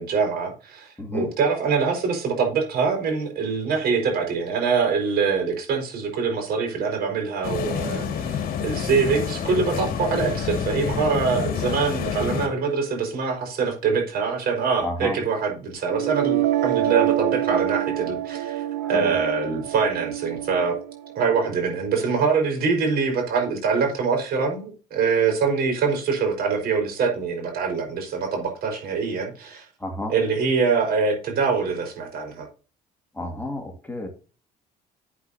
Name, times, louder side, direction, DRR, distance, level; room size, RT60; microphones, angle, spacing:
voice 1, 0.0-20.8 21.1-29.7 30.1-32.4, right 5 dB, 65° right, 5.0 m, -24 dB
voice 2, 1.0-1.3 14.8-15.2 18.8-19.2 29.8-30.1 33.1-34.1, left 1 dB, 10° left, 2.3 m, -31 dB
sound 1, 7.4-12.5, left 7 dB, 60° left, 2.1 m, -28 dB
sound 2, 15.9-21.9, right 13 dB, 90° right, 0.9 m, -26 dB
12.0 x 8.4 x 2.8 m
cardioid pair, 110°, 17 cm